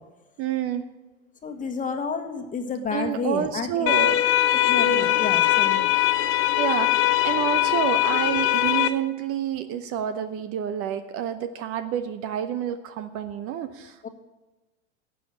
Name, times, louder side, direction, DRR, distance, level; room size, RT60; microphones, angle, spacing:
voice 1, 0.4-0.8 2.9-4.2 4.7-5.2 6.6-14.1, right 9 dB, 40° right, 11 dB, 0.8 m, -29 dB
voice 2, 1.4-4.2 4.5-5.9 14.0-14.1, left 5 dB, 20° left, 6 dB, 1.5 m, -31 dB
sound 1, 3.9-8.9, left 13 dB, 35° left, 1.0 m, -21 dB
11.5 x 7.9 x 8.7 m, 1.1 s
hypercardioid pair, 90°, 37 cm